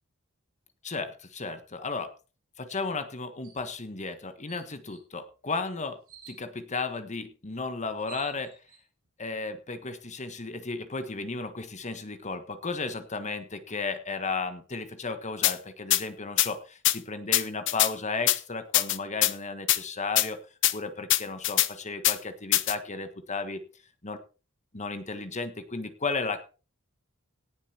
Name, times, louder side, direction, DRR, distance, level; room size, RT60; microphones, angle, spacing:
voice 1, 0.8-2.1 2.6-6.0 6.3-8.5 9.2-20.4 20.7-23.6 24.0-24.2 24.7-26.4, left 4 dB, 35° left, 9 dB, 1.5 m, -34 dB
sound 1, 3.4-3.6 4.1-4.2 4.5-5.0 6.1-6.4 7.5-7.6 7.8-8.8, right 5 dB, 75° right, 7.9 m, -48 dB
sound 2, 15.4-15.5 15.9-16.0 16.4-16.5 16.8-17.0 17.3-17.9 18.3-18.4 18.7-19.3 19.7-19.8 20.2-20.3 20.6-20.7 21.1-21.7 22.0-22.2 22.5-22.7, left 14 dB, 60° left, 0.9 m, -22 dB
18.0 x 7.2 x 4.4 m, 0.33 s
head